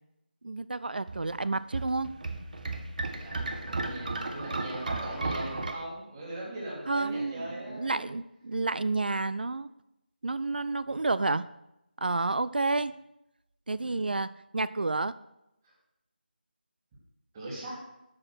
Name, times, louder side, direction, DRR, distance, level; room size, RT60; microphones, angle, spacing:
voice 1, 0.4-2.1 6.9-9.7 10.2-11.5 12.0-12.9 13.7-15.2, right 3 dB, 65° right, 16 dB, 0.4 m, -30 dB
sound 1, 1.1-5.7, right 3 dB, 50° right, 1.1 m, -34 dB
voice 2, 3.1-8.1 13.8-14.1 15.6-15.7 17.3-17.8, right 1 dB, 20° right, -5 dB, 3.5 m, -40 dB
12.5 x 5.9 x 6.3 m, 0.88 s
figure-of-eight pair, 165°, 5 cm